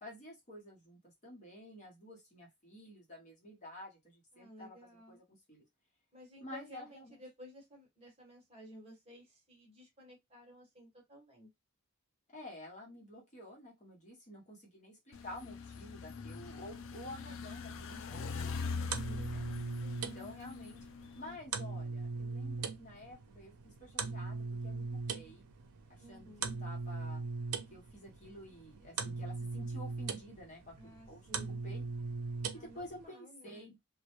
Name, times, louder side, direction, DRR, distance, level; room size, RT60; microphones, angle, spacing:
voice 1, 0.0-5.6 6.4-7.2 12.3-18.4 18.8-19.4 20.1-20.8 21.1-25.4 25.9-27.2 27.7-31.8 32.5-33.8, left 1 dB, 35° left, 0.8 m, -51 dB
voice 2, 4.3-5.2 6.1-11.5 18.8-19.3 19.8-20.2 26.0-26.5 30.8-31.6 32.5-33.7, equal, 25° right, 1.0 m, -55 dB
sound 1, 15.1-21.4, left 4 dB, 60° left, 0.3 m, -42 dB
sound 2, 16.4-33.1, right 4 dB, 90° right, 0.5 m, -41 dB
2.1 x 2.1 x 2.9 m
head